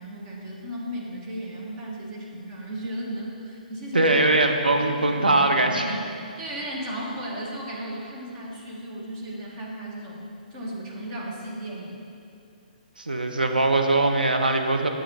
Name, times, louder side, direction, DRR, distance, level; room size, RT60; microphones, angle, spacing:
voice 1, 0.0-4.1 5.1-5.4 5.7-6.0 6.4-12.0, right 1 dB, 35° right, -3 dB, 1.6 m, -35 dB
voice 2, 3.9-6.0 13.0-14.9, right 2 dB, 90° right, 4 dB, 0.9 m, -21 dB
8.4 x 7.8 x 4.0 m, 2.6 s
figure-of-eight pair, 130°, 5 cm